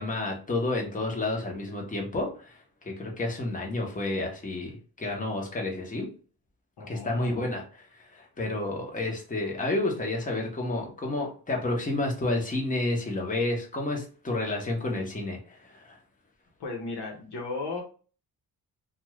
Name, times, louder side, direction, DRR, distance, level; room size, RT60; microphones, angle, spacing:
voice 1, 0.0-2.6 2.9-6.1 6.9-7.6 8.0-16.0, left 2 dB, 20° left, 0 dB, 1.0 m, -30 dB
voice 2, 6.8-7.5 16.6-17.8, left 3 dB, 75° left, 0 dB, 1.0 m, -35 dB
2.5 x 2.4 x 3.1 m, 0.38 s
cardioid pair, 85°, 40 cm